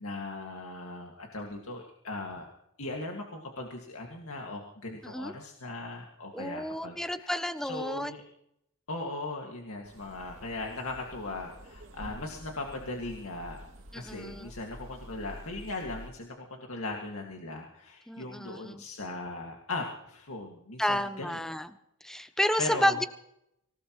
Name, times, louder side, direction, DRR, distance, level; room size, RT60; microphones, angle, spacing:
voice 1, 0.0-2.5 2.8-8.2 8.9-13.6 13.9-21.5 22.1-22.2 22.6-23.0, left 2 dB, 75° left, 1 dB, 2.1 m, -38 dB
voice 2, 6.3-8.1 13.9-14.5 18.1-18.8 20.8-21.7 22.0-23.0, equal, ahead, 11 dB, 0.7 m, -31 dB
sound 1, 9.8-16.1, equal, 65° right, 2.6 m, -48 dB
25.0 x 17.5 x 3.1 m, 0.77 s
head